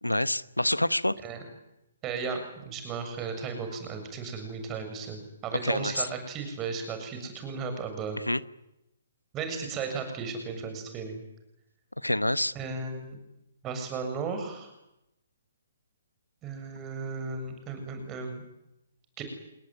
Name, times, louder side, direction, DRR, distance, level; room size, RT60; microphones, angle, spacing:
voice 1, 0.0-1.1 5.6-6.1 8.3-8.4 12.0-12.5, left 1 dB, 90° left, 16 dB, 1.2 m, -27 dB
voice 2, 2.0-8.2 9.3-11.2 12.5-13.2 13.6-14.7 16.4-18.4 19.2-19.3, right 5 dB, 20° right, 7 dB, 7.3 m, -35 dB
29.5 x 19.5 x 9.6 m, 0.88 s
figure-of-eight pair, 130°, 0 cm